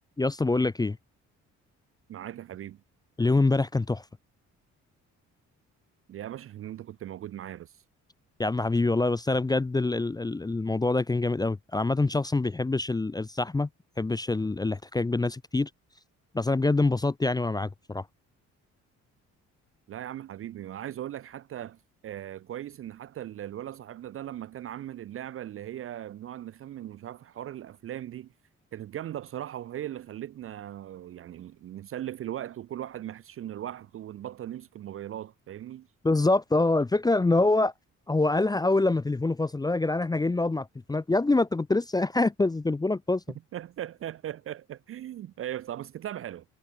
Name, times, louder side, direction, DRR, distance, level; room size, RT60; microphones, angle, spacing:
voice 1, 0.2-1.0 3.2-4.0 8.4-13.7 14.0-15.7 16.3-18.0 36.0-37.7 38.1-43.2, left 2 dB, 15° left, 0.5 m, -25 dB
voice 2, 2.1-2.8 6.1-7.8 19.9-21.8 22.0-28.3 28.7-35.9 43.5-46.4, right 11 dB, 50° right, 0.4 m, -38 dB
cardioid pair, 90°, 30 cm